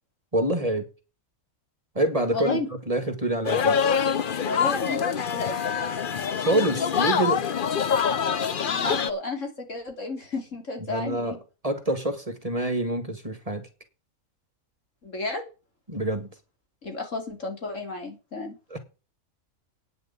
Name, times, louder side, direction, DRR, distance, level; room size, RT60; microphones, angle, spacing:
voice 1, 0.3-0.9 2.0-2.6 2.9-3.8 6.5-7.5 10.9-11.4 11.6-13.7 15.9-16.3 18.7-18.8, right 1 dB, 25° right, 1.9 m, -26 dB
voice 2, 2.3-2.7 4.4-5.6 8.6-11.4 15.0-15.4 16.8-18.5, left 2 dB, 65° left, 3.4 m, -32 dB
sound 1, 3.4-9.1, left 7 dB, 45° left, 0.8 m, -25 dB
9.7 x 6.7 x 8.3 m
omnidirectional pair, 1.4 m